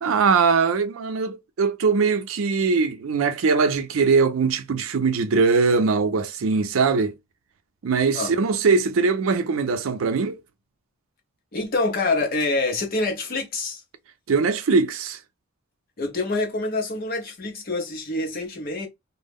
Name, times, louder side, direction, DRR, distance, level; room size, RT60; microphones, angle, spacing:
voice 1, 0.0-7.1 7.8-10.4 14.3-15.2, right 4 dB, 85° right, 0.5 m, -21 dB
voice 2, 11.5-13.8 16.0-18.9, left 2 dB, 45° left, 0.7 m, -26 dB
2.2 x 2.0 x 3.4 m
head